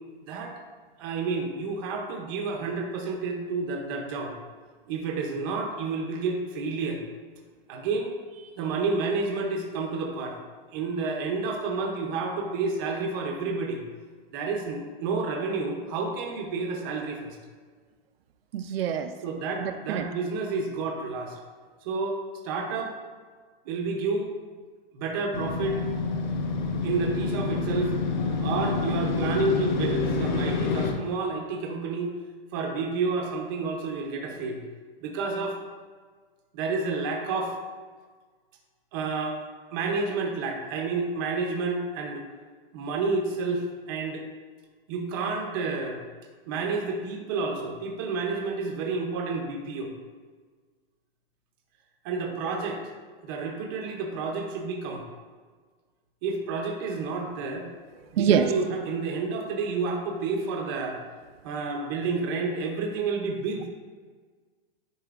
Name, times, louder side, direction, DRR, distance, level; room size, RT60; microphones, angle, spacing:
voice 1, 1.0-4.3 4.9-7.0 7.7-8.1 8.6-10.4 10.7-13.8 14.3-17.4 19.2-21.4 21.8-22.2 22.4-22.9 23.6-24.3 24.9-25.8 26.8-27.9 28.4-32.1 32.5-34.6 35.0-35.6 36.5-37.6 38.9-39.4 39.7-42.3 42.7-44.2 44.9-46.0 46.5-49.9 52.0-52.8 53.2-55.0 56.2-57.7 58.1-61.0 61.4-63.7, right 4 dB, 25° right, 1 dB, 0.6 m, -30 dB
voice 2, 18.5-19.1 19.6-20.0 58.2-58.5, right 8 dB, 80° right, 8 dB, 0.5 m, -24 dB
Motorcycle, 25.3-30.9, left 4 dB, 50° left, 0.7 m, -28 dB
10.0 x 4.2 x 2.4 m, 1.5 s
supercardioid pair, 175°, 29 cm